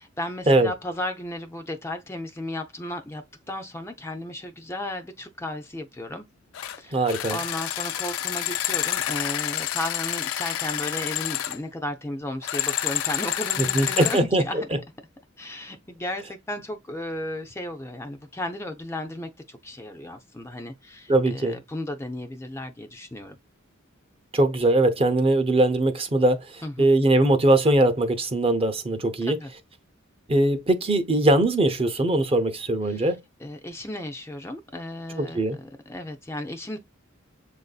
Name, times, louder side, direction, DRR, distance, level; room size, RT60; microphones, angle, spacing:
voice 1, 0.0-6.3 6.8-14.7 15.4-23.4 26.6-26.9 29.2-29.5 32.9-36.8, left 1 dB, 15° left, 0.4 m, -34 dB
sound 1, 6.5-6.8 7.1-11.6 12.4-14.2, left 12 dB, 85° left, 0.5 m, -28 dB
voice 2, 6.9-7.4 13.6-14.8 21.1-21.6 24.3-29.4 30.3-33.2 35.2-35.6, right 1 dB, 30° right, 0.7 m, -21 dB
7.2 x 2.6 x 2.3 m
head